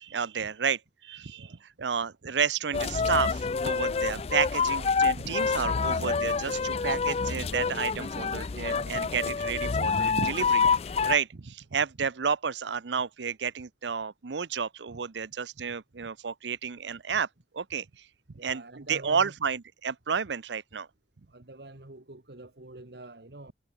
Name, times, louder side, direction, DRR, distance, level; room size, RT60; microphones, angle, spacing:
voice 1, 0.0-10.6 11.0-17.3 17.5-18.1 18.4-20.9, right 6 dB, 85° right, 0.7 m, -31 dB
sound 1, 2.7-11.2, left 5 dB, 35° left, 0.4 m, -27 dB
voice 2, 4.6-5.0 18.4-19.3 21.3-23.5, right 2 dB, 65° right, 1.7 m, -46 dB
head